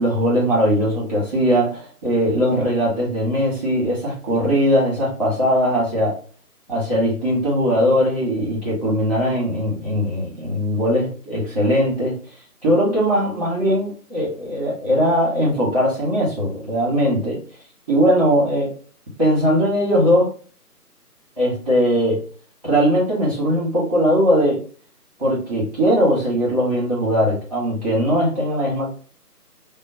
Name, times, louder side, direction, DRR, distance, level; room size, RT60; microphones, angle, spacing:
voice 1, 0.0-6.2 6.7-12.2 12.6-17.4 17.9-18.7 19.2-20.3 21.4-22.2 22.6-24.6 25.2-28.9, equal, 20° right, -7 dB, 1.4 m, -20 dB
3.0 x 2.1 x 3.9 m, 0.41 s
figure-of-eight pair, 175°, 47 cm